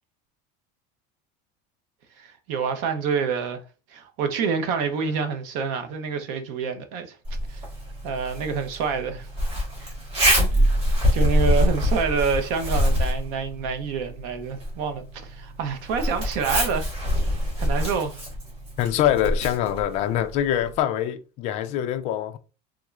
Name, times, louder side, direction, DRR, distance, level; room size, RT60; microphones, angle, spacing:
voice 1, 2.2-3.6 3.9-7.2 7.5-7.6 8.0-9.3 9.8-9.9 10.4-10.8 11.1-16.9 17.6-18.2, right 5 dB, 55° right, 0.6 m, -27 dB
Zipper (clothing), 7.2-20.8, equal, 25° right, 1.6 m, -26 dB
voice 2, 18.8-22.4, left 11 dB, 35° left, 0.3 m, -24 dB
3.5 x 2.3 x 3.1 m
cardioid pair, 170°, 20 cm